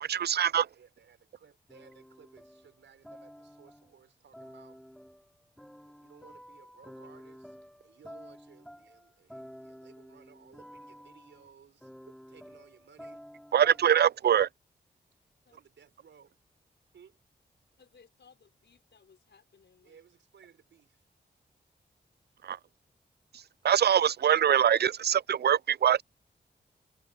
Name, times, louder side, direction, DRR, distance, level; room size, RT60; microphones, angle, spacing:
voice 1, 0.0-0.7 13.5-14.5 22.4-22.6 23.6-26.0, right 9 dB, 60° right, 0.4 m, -23 dB
voice 2, 0.7-4.8 5.9-12.0 12.3-13.2 15.5-16.3 16.9-17.2 19.8-21.1, right 7 dB, 90° right, 5.6 m, -59 dB
sound 1, 1.7-3.9 4.3-14.1, equal, ahead, 2.9 m, -51 dB
voice 3, 17.8-20.0, left 6 dB, 75° left, 5.1 m, -61 dB
cardioid pair, 45°, 19 cm